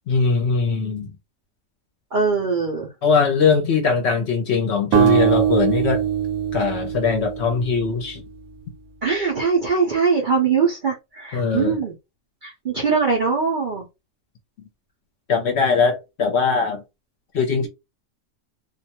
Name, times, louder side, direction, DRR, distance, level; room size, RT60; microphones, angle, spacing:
voice 1, 0.1-1.1 3.0-6.0 6.5-8.2 11.3-11.8 15.3-16.8 17.3-17.7, left 5 dB, 60° left, 0.8 m, -21 dB
voice 2, 2.1-2.9 9.0-11.9 12.4-13.9, right 5 dB, 55° right, 0.6 m, -21 dB
sound 1, 4.9-8.1, right 9 dB, 80° right, 1.1 m, -21 dB
2.5 x 2.2 x 2.8 m
omnidirectional pair, 1.5 m